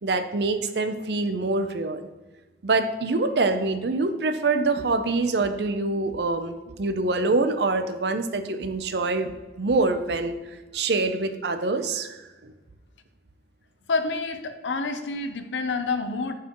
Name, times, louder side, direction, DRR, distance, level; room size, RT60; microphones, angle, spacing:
voice 1, 0.0-2.0 2.6-9.3 9.6-10.4 10.7-12.5, right 3 dB, 70° right, 9 dB, 0.6 m, -25 dB
voice 2, 13.9-16.3, left 3 dB, 90° left, 8 dB, 0.6 m, -28 dB
9.3 x 4.8 x 3.0 m, 1.2 s
head